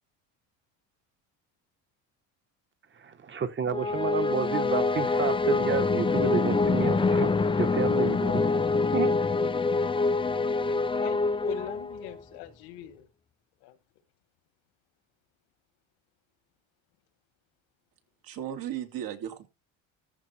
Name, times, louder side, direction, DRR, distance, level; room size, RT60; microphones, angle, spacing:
voice 1, 3.0-8.6 8.9-9.1, right 6 dB, 30° right, 1.5 m, -30 dB
sound 1, 3.7-12.2, left 4 dB, 15° left, 0.6 m, -25 dB
voice 2, 10.7-13.1 13.6-13.8, left 10 dB, 80° left, 1.8 m, -42 dB
voice 3, 18.2-19.5, right 10 dB, 60° right, 2.7 m, -35 dB
14.0 x 4.8 x 4.5 m
cardioid pair, 110°, 39 cm